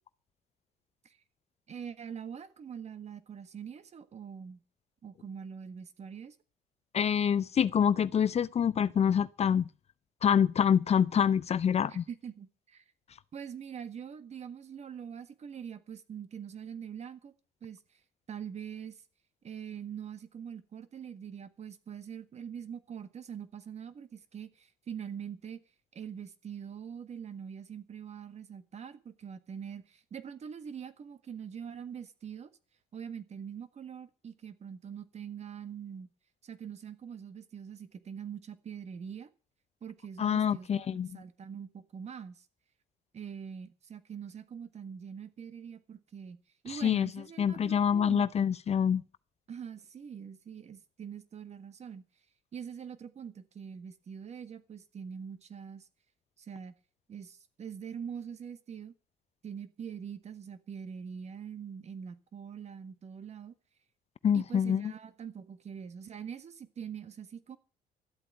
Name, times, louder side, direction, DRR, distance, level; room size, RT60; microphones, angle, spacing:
voice 1, 1.7-4.6 5.0-6.4 11.9-12.8 13.3-17.3 17.6-17.8 18.3-19.0 19.4-25.6 25.9-32.5 32.9-36.1 36.4-39.3 39.8-40.9 41.1-42.4 43.1-48.3 49.5-52.0 52.5-55.9 56.4-56.7 57.1-58.9 59.4-63.5 64.3-67.6, right 7 dB, 40° right, 1.6 m, -43 dB
voice 2, 6.9-9.7 10.2-12.0 40.2-41.1 46.7-47.1 47.4-49.0 64.2-64.9, left 8 dB, 40° left, 0.6 m, -26 dB
13.0 x 8.3 x 8.7 m
cardioid pair, 110°, 17 cm